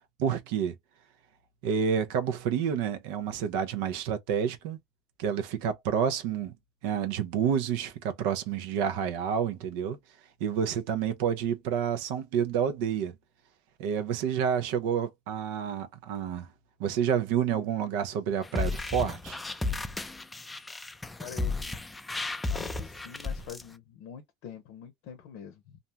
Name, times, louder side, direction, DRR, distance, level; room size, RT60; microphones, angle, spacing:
voice 1, 0.2-0.7 1.6-4.8 5.2-6.5 6.8-10.0 10.4-13.1 13.8-16.5 16.8-19.4, right 8 dB, 80° right, 0.6 m, -29 dB
sound 1, 18.4-23.6, left 3 dB, 10° left, 0.4 m, -33 dB
voice 2, 21.2-21.7 22.5-25.8, left 8 dB, 75° left, 0.6 m, -45 dB
2.5 x 2.1 x 2.7 m
supercardioid pair, 110°, 0 cm